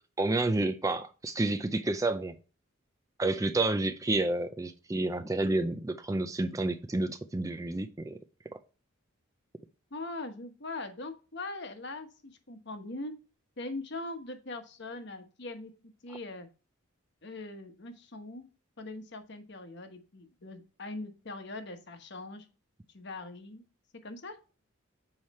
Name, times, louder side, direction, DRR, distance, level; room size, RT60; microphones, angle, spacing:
voice 1, 0.2-2.3 3.2-8.2, right 2 dB, 15° right, 0.4 m, -30 dB
voice 2, 9.9-13.1 13.6-15.7 16.0-16.5 17.2-18.5 18.8-22.5 22.9-23.6 24.0-24.4, left 2 dB, 55° left, 1.1 m, -41 dB
7.3 x 4.8 x 4.2 m
head